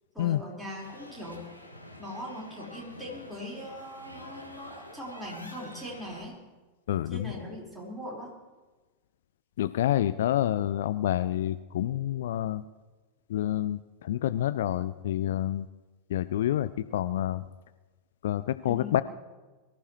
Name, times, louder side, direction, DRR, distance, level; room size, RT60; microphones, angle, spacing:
voice 1, 0.1-1.5 2.0-6.4 7.1-8.3 18.6-19.0, left 1 dB, ahead, -5 dB, 4.9 m, -40 dB
sound 1, 0.8-6.2, left 1 dB, 90° left, 1.7 m, -48 dB
voice 2, 6.9-7.3 9.6-12.6 13.3-15.7 16.1-17.4 18.2-19.0, left 12 dB, 60° left, 15 dB, 0.4 m, -28 dB
23.0 x 14.5 x 3.2 m, 1.3 s
figure-of-eight pair, 90°, 0 cm